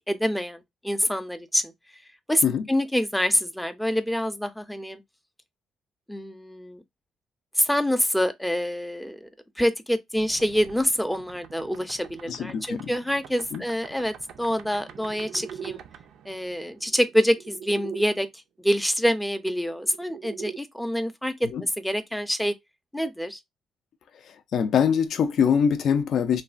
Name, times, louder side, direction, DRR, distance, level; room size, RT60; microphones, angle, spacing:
voice 1, 0.1-1.7 2.3-5.0 6.1-6.8 7.6-9.3 9.6-15.8 16.3-18.3 18.6-21.5 21.8-22.5 22.9-23.4, equal, 5° left, 0.4 m, -26 dB
sound 1, 10.1-18.0 19.3-20.6, right 8 dB, 75° right, 0.4 m, -43 dB
voice 2, 12.3-12.9 13.5-13.6 21.5-21.6 24.2-26.4, left 7 dB, 70° left, 0.4 m, -23 dB
3.1 x 2.1 x 2.4 m
cardioid pair, 90°, 0 cm